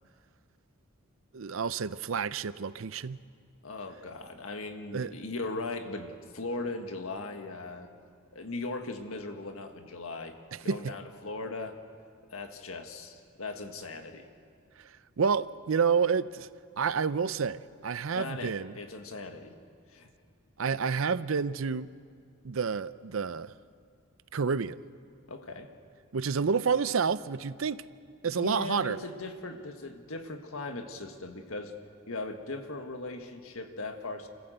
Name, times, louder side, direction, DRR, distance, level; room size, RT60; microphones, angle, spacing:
voice 1, 1.3-3.2 4.9-5.1 10.7-10.8 14.8-16.5 16.8-18.7 20.6-21.9 22.4-23.5 24.3-24.8 26.1-27.8 28.2-29.0, right 5 dB, 70° right, 0.6 m, -29 dB
voice 2, 3.6-7.9 8.3-10.4 10.6-11.8 12.3-14.3 18.2-19.5 19.9-20.1 25.3-25.7 28.3-31.7 32.1-34.3, left 3 dB, 80° left, 1.7 m, -38 dB
29.0 x 15.5 x 7.9 m
head